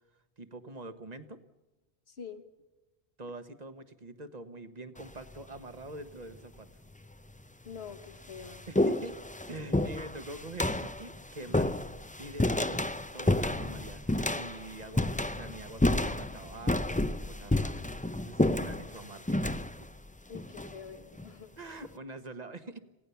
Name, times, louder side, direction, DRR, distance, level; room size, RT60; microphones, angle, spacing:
voice 1, 0.4-1.4 3.2-6.7 8.7-9.2 9.5-11.9 12.2-19.6 21.6-22.8, right 2 dB, 40° right, 11 dB, 1.4 m, -45 dB
voice 2, 2.1-2.4 7.6-8.6 20.3-21.8, left 6 dB, 65° left, 9 dB, 1.8 m, -46 dB
sound 1, 5.0-5.4 6.4-6.5 7.3-7.4 7.8-21.3, left 1 dB, 10° left, 0.5 m, -31 dB
26.5 x 17.0 x 7.0 m, 1.1 s
omnidirectional pair, 1.1 m